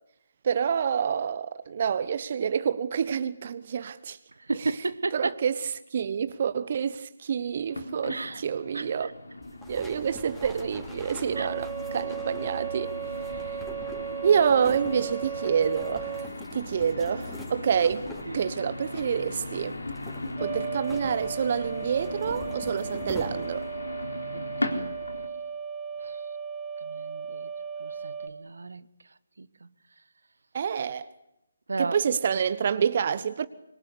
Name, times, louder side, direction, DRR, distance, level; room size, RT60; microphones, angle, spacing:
voice 1, 0.4-4.2 4.6-4.7 5.1-9.1 9.7-13.7 14.2-18.1 18.3-19.8 20.4-23.7 30.5-31.1 31.8-33.5, right 7 dB, 45° right, 1.1 m, -28 dB
voice 2, 4.4-5.4 8.1-8.4 8.7-9.1 11.4-11.5 18.3-18.4 24.3-24.9 26.0-26.2 26.8-27.5 27.8-28.9 29.4-29.7 31.7-32.0, right 3 dB, 70° right, 1.3 m, -34 dB
sound 1, 7.7-25.3, left 1 dB, 80° left, 4.1 m, -38 dB
sound 2, 9.4-23.7, left 2 dB, 10° left, 5.2 m, -45 dB
sound 3, 11.3-16.3 20.4-28.3, right 7 dB, 15° right, 2.0 m, -36 dB
25.5 x 24.0 x 8.4 m
figure-of-eight pair, 150°, 0 cm